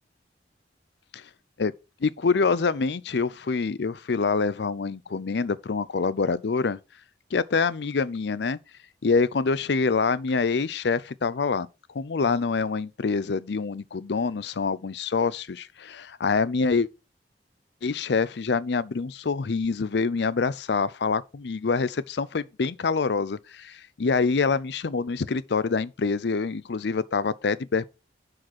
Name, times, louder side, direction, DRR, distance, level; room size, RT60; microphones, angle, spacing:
voice 1, 2.0-6.8 7.3-8.6 9.0-11.7 11.9-16.9 17.8-27.8, left 4 dB, 65° left, 0.5 m, -26 dB
10.5 x 5.0 x 4.3 m
head